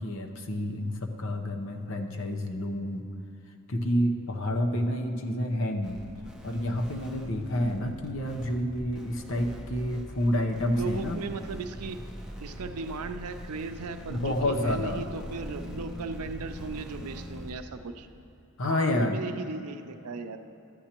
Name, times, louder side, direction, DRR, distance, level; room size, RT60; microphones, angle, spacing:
voice 1, 0.0-3.1 3.7-6.1 6.4-11.2 14.1-15.0 18.6-19.2, left 1 dB, 60° left, 4 dB, 0.8 m, -29 dB
sound 1, 5.8-17.5, equal, 5° right, 0.7 m, -42 dB
voice 2, 10.7-12.0 12.4-18.1 18.7-20.4, right 4 dB, 90° right, 8 dB, 0.5 m, -37 dB
13.0 x 9.7 x 2.9 m, 2.9 s
head